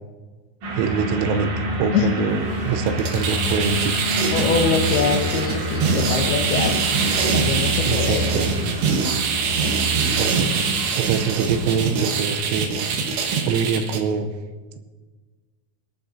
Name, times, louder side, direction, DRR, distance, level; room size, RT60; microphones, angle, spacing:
sound 1, 0.6-12.0, right 1 dB, 50° right, 3.3 m, -27 dB
voice 1, 0.7-4.0 7.9-8.5 10.1-10.5 11.0-12.7 13.5-14.3, right 6 dB, 85° right, 8 dB, 3.5 m, -24 dB
sound 2, 2.9-14.0, right 5 dB, 70° right, 3.0 m, -24 dB
voice 2, 4.3-6.7 7.3-8.3 9.6-9.8, left 6 dB, 80° left, 2 dB, 2.3 m, -24 dB
24.0 x 10.5 x 2.7 m, 1.4 s
omnidirectional pair, 5.9 m